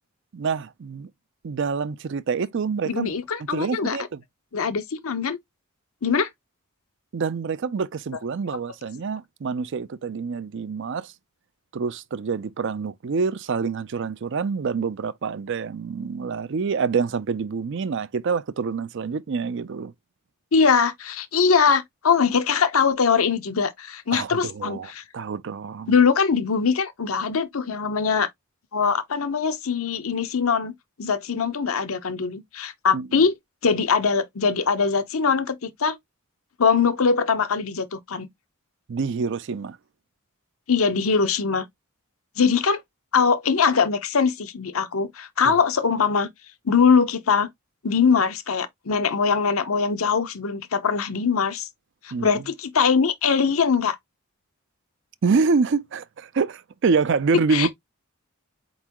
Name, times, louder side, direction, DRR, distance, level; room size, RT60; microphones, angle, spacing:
voice 1, 0.3-1.1 1.4-3.1 3.5-4.2 7.1-11.1 11.7-19.9 24.1-25.9 32.9-33.1 38.9-39.8 45.5-45.6 52.1-52.3 55.2-57.7, right 5 dB, 55° right, 0.4 m, -26 dB
voice 2, 2.9-4.0 4.5-5.4 6.0-6.3 20.5-25.0 25.9-28.3 28.7-30.7 31.0-33.3 33.6-36.0 36.6-38.3 40.7-41.6 42.4-42.8 43.1-46.3 46.6-47.5 47.8-51.7 52.0-54.0 57.5-57.7, left 5 dB, 75° left, 0.8 m, -22 dB
4.5 x 3.9 x 2.9 m
head